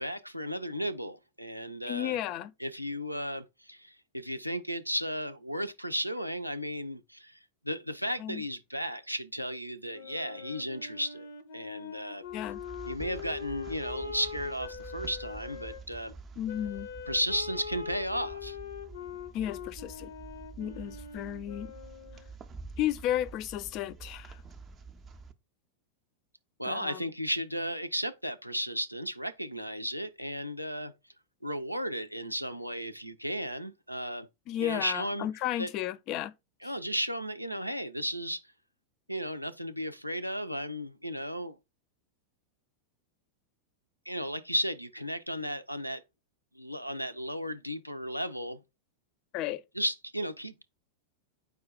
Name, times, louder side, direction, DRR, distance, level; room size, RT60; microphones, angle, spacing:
voice 1, 0.0-2.2 2.6-7.4 7.6-11.3 11.5-12.2 12.9-16.1 17.1-18.6 26.6-30.9 31.4-34.3 34.6-35.3 35.6-35.7 36.6-38.4 39.1-41.6 44.1-46.0 46.6-48.6 49.8-50.6, equal, 90° right, 0.4 m, -34 dB
voice 2, 1.9-2.5 8.2-8.4 12.3-12.6 16.4-16.9 19.3-20.1 20.6-21.7 22.8-24.4 26.6-27.1 34.5-36.3 36.6-36.7 49.3-49.6, left 12 dB, 40° left, 0.4 m, -33 dB
Wind instrument woodwind instrument, 9.9-15.8 16.5-22.3, left 7 dB, 60° left, 0.8 m, -43 dB
sound 1, 12.3-25.3, right 4 dB, 20° right, 0.5 m, -48 dB
4.8 x 2.2 x 4.7 m
figure-of-eight pair, 90°, 0 cm